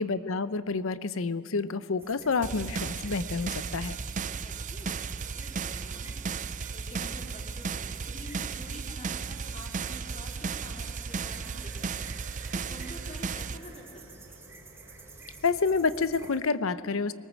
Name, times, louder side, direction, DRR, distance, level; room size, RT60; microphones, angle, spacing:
voice 1, 0.0-4.0 15.4-17.1, left 4 dB, 75° left, 15 dB, 0.7 m, -28 dB
sound 1, 2.0-16.4, right 3 dB, 10° right, 2.8 m, -50 dB
sound 2, 2.4-13.6, right 5 dB, 35° right, 0.4 m, -35 dB
voice 2, 4.3-4.9 5.3-6.2 6.7-14.4, left 1 dB, 30° left, 0 dB, 3.1 m, -47 dB
sound 3, 9.3-15.6, right 5 dB, 55° right, 2.3 m, -55 dB
22.0 x 19.0 x 7.4 m, 2.3 s
head